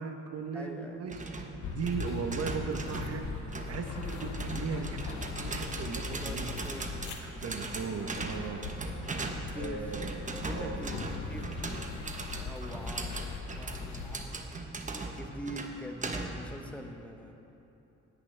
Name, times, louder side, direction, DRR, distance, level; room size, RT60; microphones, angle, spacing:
voice 1, 0.0-6.7 7.2-8.7 9.2-10.2 10.5-10.8, right 5 dB, 55° right, 6 dB, 1.0 m, -38 dB
voice 2, 0.5-1.0 6.1-7.0 7.3-8.0 9.3-10.0 10.4-11.8 12.4-14.4 15.0-17.3, equal, 5° left, 3 dB, 1.1 m, -44 dB
sound 1, 1.1-16.5, right 3 dB, 25° right, 1.0 m, -39 dB
sound 2, 1.6-14.2, left 4 dB, 70° left, 1.1 m, -40 dB
17.5 x 9.9 x 3.4 m, 2.9 s
cardioid pair, 90°, 30 cm